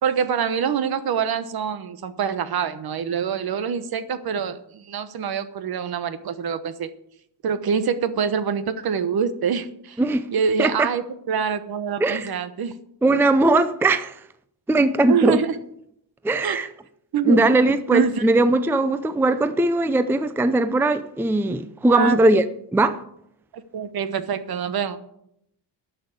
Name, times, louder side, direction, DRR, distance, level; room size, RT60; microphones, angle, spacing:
voice 1, 0.0-6.9 7.4-10.0 10.3-12.8 15.1-15.6 16.4-16.6 17.1-17.4 17.9-18.3 21.9-22.4 23.7-25.0, right 7 dB, 55° right, 1.1 m, -25 dB
voice 2, 12.0-12.3 13.0-14.2 14.7-15.4 16.2-16.7 17.3-22.4 22.7-23.0, right 2 dB, 5° right, 0.5 m, -19 dB
12.0 x 6.1 x 8.4 m
cardioid pair, 110°, 44 cm